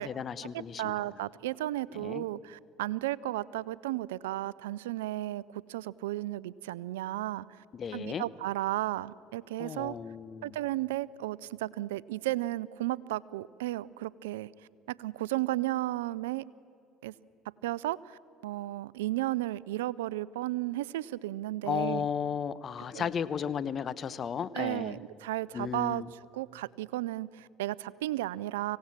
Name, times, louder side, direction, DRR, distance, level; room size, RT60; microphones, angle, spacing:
voice 1, 0.0-1.0 2.0-2.2 7.7-8.2 9.6-10.5 21.6-25.0 25.5-26.1, left 7 dB, 45° left, 16 dB, 0.9 m, -34 dB
voice 2, 0.8-7.5 7.9-10.0 10.4-14.5 15.0-16.4 17.0-17.1 17.6-22.1 22.9-23.1 24.5-28.8, right 16 dB, 85° right, 22 dB, 0.5 m, -34 dB
25.0 x 17.5 x 7.4 m, 2.9 s
hypercardioid pair, 75°, 0 cm